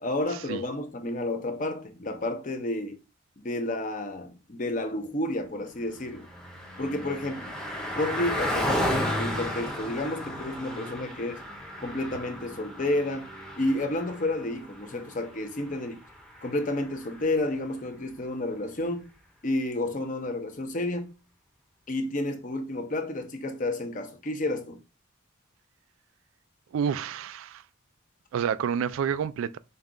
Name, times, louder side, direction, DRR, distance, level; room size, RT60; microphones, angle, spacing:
voice 1, 0.0-3.0 3.4-6.3 6.8-7.6 7.9-11.4 11.8-13.3 13.6-16.0 16.4-19.1 19.4-21.1 21.9-24.8, left 1 dB, 40° left, 0.7 m, -31 dB
Car passing by, 5.6-17.4, left 1 dB, 5° left, 0.8 m, -34 dB
voice 2, 26.7-27.6 28.3-29.6, right 7 dB, 80° right, 0.3 m, -29 dB
5.3 x 2.3 x 3.8 m
head